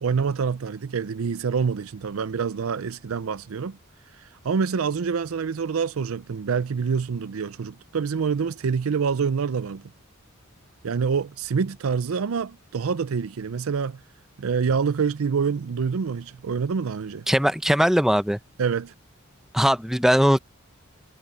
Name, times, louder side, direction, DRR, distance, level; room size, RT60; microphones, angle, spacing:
voice 1, 0.0-3.8 4.2-9.8 10.8-14.0 14.4-17.2 18.6-18.9, right 6 dB, 75° right, 0.5 m, -26 dB
voice 2, 17.3-18.4 19.5-20.4, equal, ahead, 0.8 m, -20 dB
head